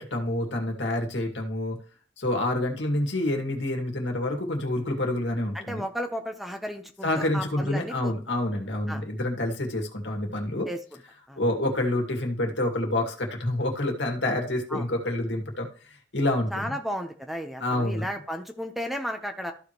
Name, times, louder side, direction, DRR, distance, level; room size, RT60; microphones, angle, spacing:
voice 1, 0.0-1.8 2.2-5.9 7.0-10.7 11.4-15.7 16.1-16.7 17.6-18.1, left 1 dB, 70° left, 2 dB, 2.2 m, -27 dB
voice 2, 5.5-8.1 8.9-9.0 10.7-11.0 11.3-11.4 14.7-14.9 16.5-19.5, equal, ahead, 6 dB, 0.8 m, -34 dB
14.0 x 4.9 x 3.0 m, 0.41 s
head